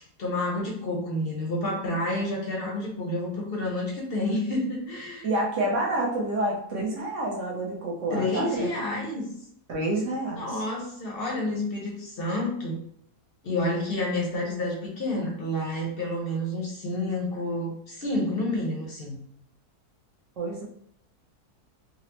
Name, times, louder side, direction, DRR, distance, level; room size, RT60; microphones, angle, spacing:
voice 1, 0.2-5.3 8.1-9.3 10.3-12.8 13.4-19.2, left 1 dB, 50° left, -2 dB, 0.7 m, -29 dB
voice 2, 5.2-8.7 9.7-10.5 20.4-20.6, right 1 dB, 60° right, -2 dB, 0.9 m, -28 dB
4.0 x 2.0 x 2.8 m, 0.67 s
omnidirectional pair, 1.7 m